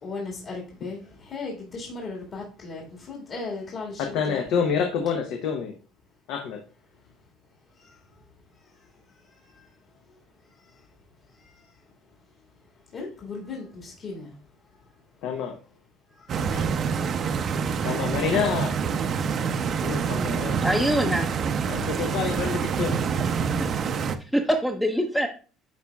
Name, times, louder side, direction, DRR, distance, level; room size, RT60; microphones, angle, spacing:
voice 1, 0.0-4.6 7.8-7.9 9.4-9.7 11.4-11.6 12.9-14.4 16.2-16.7 19.4-20.2, left 3 dB, 50° left, -3 dB, 1.9 m, -37 dB
voice 2, 4.0-5.7 6.3-6.6 15.2-15.5 17.8-18.8 19.8-20.5 21.7-23.0, left 6 dB, 75° left, 3 dB, 0.8 m, -27 dB
Stream, 16.3-24.1, right 6 dB, 45° right, 0.6 m, -26 dB
voice 3, 20.6-21.3 24.3-25.3, equal, 5° left, 2 dB, 0.6 m, -23 dB
10.5 x 4.1 x 2.3 m, 0.38 s
cardioid pair, 110°, 0 cm